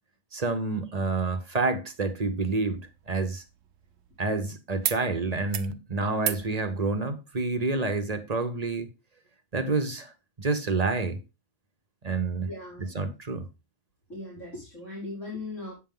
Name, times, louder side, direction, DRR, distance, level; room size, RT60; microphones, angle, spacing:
voice 1, 0.3-3.4 4.2-8.9 9.5-10.1 10.4-11.2 12.0-12.5 12.8-13.5, right 3 dB, 35° right, 0.8 m, -28 dB
sound 1, 2.6-4.4 4.8-5.0 5.3-5.7 6.2-6.5 7.8-7.9, right 11 dB, 75° right, 1.0 m, -35 dB
voice 2, 12.4-12.9 14.1-15.7, left 2 dB, 70° left, 5.2 m, -38 dB
8.4 x 7.2 x 3.7 m
omnidirectional pair, 1.4 m